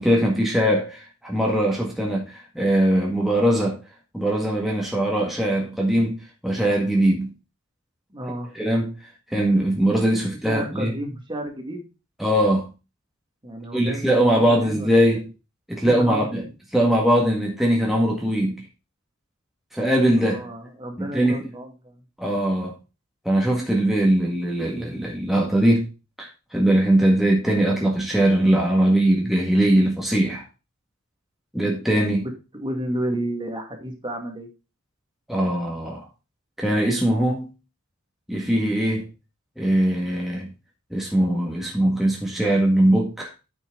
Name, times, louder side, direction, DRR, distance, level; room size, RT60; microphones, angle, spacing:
voice 1, 0.0-3.8 4.1-6.2 6.4-7.3 8.5-8.9 9.3-10.9 12.2-12.7 13.7-15.3 15.7-16.4 16.7-18.6 19.7-20.4 21.0-21.5 22.2-22.8 23.3-25.9 26.2-30.4 31.5-32.3 35.3-36.1 36.6-37.5 38.3-39.1 39.6-40.5 40.9-43.3, right 1 dB, ahead, 1.9 m, -21 dB
voice 2, 8.1-8.5 10.3-11.9 13.4-15.2 15.8-16.3 20.2-22.0 32.2-34.5, right 1 dB, 25° right, 2.2 m, -32 dB
9.4 x 6.3 x 3.9 m
head